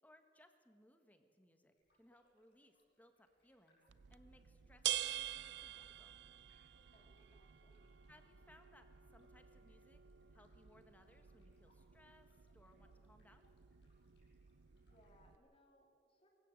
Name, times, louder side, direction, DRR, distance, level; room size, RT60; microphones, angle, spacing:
voice 1, 0.0-3.8 4.1-6.2 8.1-10.0 10.3-12.3 12.5-13.5, left 1 dB, 10° left, 6 dB, 1.5 m, -67 dB
sound 1, 1.8-15.2, left 1 dB, 70° left, 7.5 m, -80 dB
sound 2, 3.9-15.4, right 12 dB, 85° right, 0.5 m, -48 dB
voice 2, 6.7-7.8 14.8-16.3, equal, 35° left, 2 dB, 3.4 m, -70 dB
24.0 x 15.5 x 7.8 m, 2.5 s
head